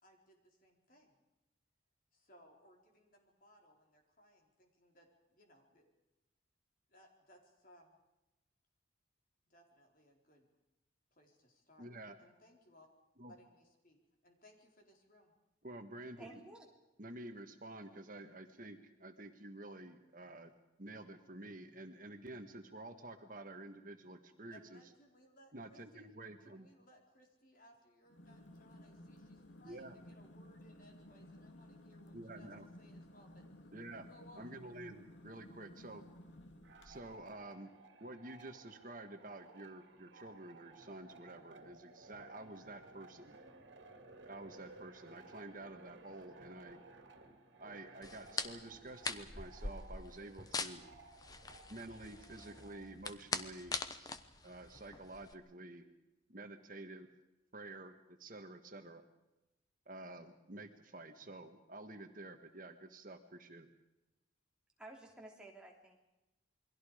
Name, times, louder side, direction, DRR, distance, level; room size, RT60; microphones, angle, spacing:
voice 1, 0.0-1.2 2.1-5.8 6.9-8.0 9.5-10.5 11.1-12.9 13.3-15.3 24.5-26.0 26.4-33.4 33.9-34.5, equal, 45° left, 2 dB, 4.5 m, -64 dB
voice 2, 11.8-12.1 13.2-13.3 15.6-16.4 17.0-20.5 20.8-24.8 25.5-26.7 29.6-30.0 32.1-32.7 33.7-34.1 34.4-36.0 36.8-37.7 38.0-43.3 44.2-46.8 47.6-50.8 51.7-54.1 54.4-55.8 56.3-57.1 57.5-59.0 59.8-63.7, right 2 dB, 45° right, 6 dB, 1.5 m, -50 dB
voice 3, 16.2-16.6 64.8-66.0, right 2 dB, 5° right, -1 dB, 3.3 m, -53 dB
sound 1, 28.1-37.3, left 1 dB, 70° left, 2.1 m, -56 dB
sound 2, 36.6-53.0, right 3 dB, 75° right, 2.5 m, -58 dB
sound 3, 48.0-55.3, left 3 dB, 20° left, 1.0 m, -43 dB
28.5 x 22.5 x 5.1 m, 0.98 s
head